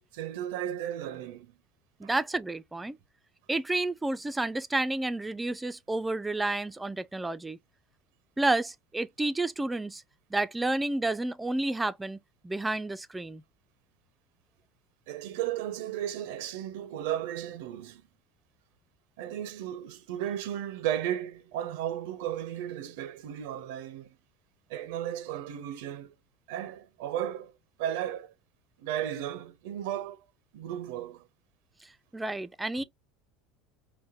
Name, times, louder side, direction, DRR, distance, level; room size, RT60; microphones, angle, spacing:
voice 1, 0.0-1.6 2.0-2.1 15.1-18.0 19.2-24.1 24.7-26.1 26.5-27.5 27.8-28.3 28.8-30.2 30.5-31.3 32.8-32.9, right 11 dB, 70° right, 0.5 m, -35 dB
voice 2, 2.0-3.0 3.5-7.6 8.4-10.0 10.3-13.4 31.8-32.8, right 2 dB, 10° right, 0.3 m, -30 dB
4.0 x 2.1 x 2.4 m
hypercardioid pair, 80°, 0 cm